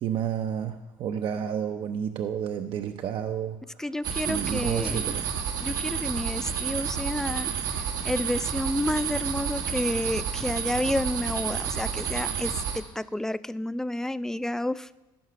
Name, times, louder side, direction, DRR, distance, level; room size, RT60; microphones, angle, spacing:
voice 1, 0.0-3.6 4.3-5.3, right 8 dB, 55° right, 6 dB, 0.6 m, -30 dB
voice 2, 3.8-5.2 5.6-7.5 8.0-14.9, left 1 dB, 5° left, 16 dB, 0.3 m, -30 dB
sound 1, 4.0-12.8, right 7 dB, 85° right, 1.3 m, -30 dB
14.5 x 5.6 x 5.8 m, 1.1 s
supercardioid pair, 75°, 11 cm